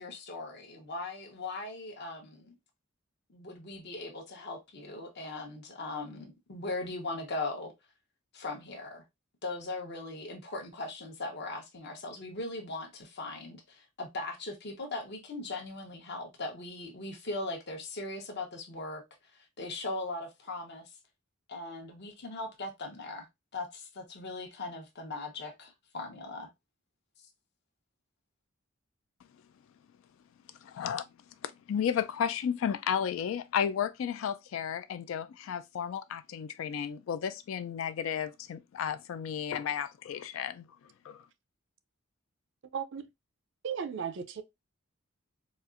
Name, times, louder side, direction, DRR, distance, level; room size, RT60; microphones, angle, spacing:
voice 1, 0.0-2.5 3.3-7.7 8.3-9.0 9.4-19.0 19.6-20.9 21.5-23.3 23.5-26.5, left 2 dB, 55° left, 0.9 m, -39 dB
voice 2, 30.6-31.0 31.4-40.7 41.0-41.3, left 8 dB, 70° left, 0.3 m, -33 dB
voice 3, 42.7-43.1 43.6-44.4, right 7 dB, 60° right, 0.4 m, -35 dB
4.1 x 2.4 x 2.4 m
head